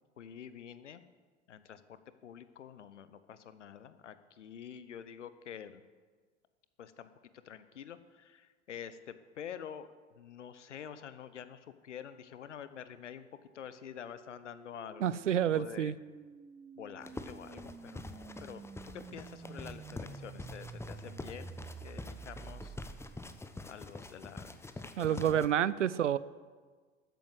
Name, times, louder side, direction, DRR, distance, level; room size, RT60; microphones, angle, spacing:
voice 1, 0.2-1.0 1.5-5.8 6.8-9.9 10.2-13.3 13.5-15.2 15.5-15.9 16.8-22.8 23.7-24.6 25.0-25.7, left 8 dB, 80° left, 13 dB, 0.9 m, -48 dB
sound 1, 13.5-23.5, right 5 dB, 10° right, 0.3 m, -50 dB
voice 2, 15.0-16.0 25.0-26.2, right 10 dB, 85° right, 19 dB, 0.5 m, -29 dB
sound 2, 17.0-25.5, left 2 dB, 5° left, 0.9 m, -46 dB
12.5 x 9.3 x 7.8 m, 1.5 s
figure-of-eight pair, 75°, 35 cm